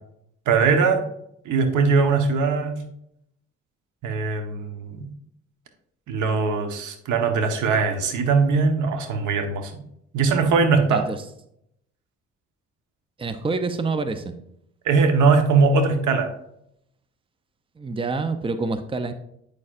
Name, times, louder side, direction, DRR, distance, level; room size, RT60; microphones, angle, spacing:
voice 1, 0.5-1.0 1.4-2.8 4.0-5.1 6.1-9.8 10.1-11.1 14.8-16.3, right 4 dB, 80° right, 6 dB, 1.2 m, -21 dB
voice 2, 10.9-11.2 13.2-14.4 17.8-19.1, right 3 dB, 20° right, 9 dB, 0.6 m, -27 dB
8.6 x 6.7 x 2.5 m, 0.74 s
cardioid pair, 90°, 30 cm